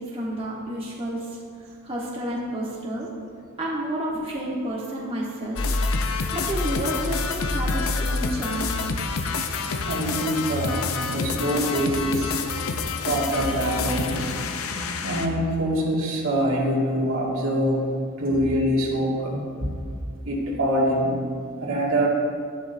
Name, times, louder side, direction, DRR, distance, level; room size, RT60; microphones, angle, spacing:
voice 1, 0.0-1.4 1.8-3.1 3.6-5.6 6.3-8.8, right 1 dB, 25° right, -5 dB, 1.3 m, -30 dB
sound 1, 5.6-15.3, left 4 dB, 70° left, 0.7 m, -27 dB
voice 2, 9.9-12.4 13.1-14.2 15.0-17.8 18.2-19.4 19.9-20.0 20.2-21.2 21.6-22.1, equal, 70° right, -4 dB, 2.2 m, -24 dB
12.0 x 11.0 x 2.7 m, 2.1 s
head